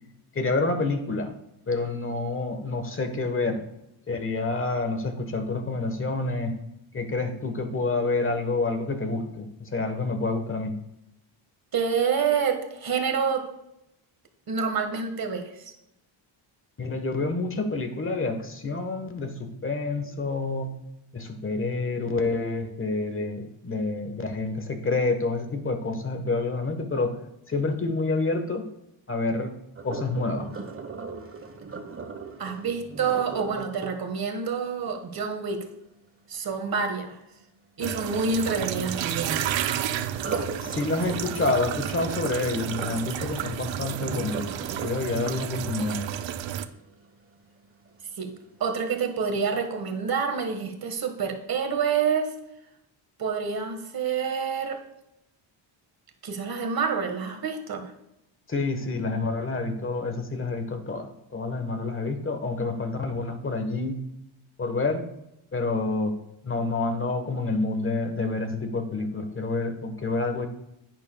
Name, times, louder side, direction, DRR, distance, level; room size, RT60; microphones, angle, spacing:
voice 1, 0.3-1.3 1.7-3.6 4.1-6.6 6.9-10.8 16.8-20.7 21.1-28.7 29.1-29.6 29.8-30.6 40.6-44.5 44.8-46.0 58.5-64.0 64.6-65.1 65.5-70.5, left 3 dB, 25° left, 7 dB, 1.2 m, -28 dB
voice 2, 11.7-13.5 14.5-15.7 32.4-35.7 36.3-37.2 37.8-39.5 48.2-52.3 53.2-54.8 56.2-57.9, right 6 dB, 45° right, 6 dB, 1.5 m, -28 dB
Sink (filling or washing), 29.8-35.7 40.1-47.1 47.6-48.0 48.5-48.6, right 4 dB, 25° right, 1.1 m, -39 dB
sound 1, 37.8-46.7, right 10 dB, 65° right, 0.7 m, -31 dB
10.5 x 9.1 x 2.2 m, 0.86 s
cardioid pair, 115°, 49 cm